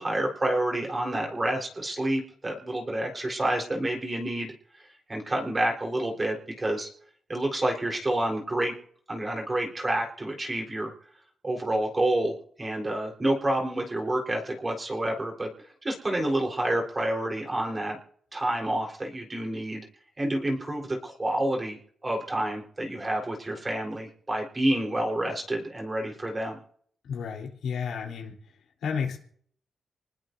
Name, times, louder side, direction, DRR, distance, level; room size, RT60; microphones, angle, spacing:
voice 1, 0.0-4.8 5.1-6.9 7.3-8.7 9.1-10.9 11.4-15.5 15.8-18.0 18.3-19.9 20.2-26.6, right 1 dB, 25° right, 1 dB, 4.0 m, -28 dB
voice 2, 27.0-28.3 28.8-29.2, left 6 dB, 85° left, -1 dB, 3.7 m, -31 dB
26.0 x 19.5 x 2.7 m, 0.62 s
cardioid pair, 85°, 0 cm